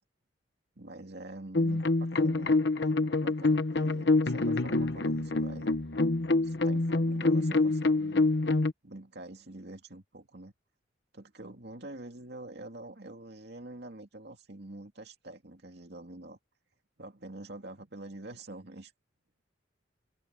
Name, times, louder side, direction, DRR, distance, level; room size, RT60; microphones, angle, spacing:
voice 1, 0.8-2.5 2.9-5.7 6.4-8.3 8.8-10.5 11.1-16.4 17.0-18.9, right 2 dB, 60° right, 2.7 m, -46 dB
sound 1, 1.6-8.7, left 2 dB, 60° left, 1.1 m, -26 dB
head